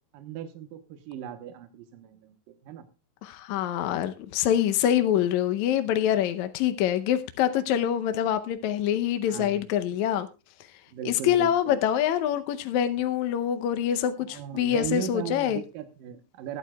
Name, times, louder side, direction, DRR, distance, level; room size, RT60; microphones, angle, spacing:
voice 1, 0.1-2.9 9.3-9.6 10.9-11.8 14.3-16.6, right 9 dB, 80° right, 2.7 m, -37 dB
voice 2, 3.2-10.3 11.1-15.6, left 10 dB, 75° left, 1.8 m, -25 dB
20.0 x 11.0 x 2.3 m
omnidirectional pair, 3.9 m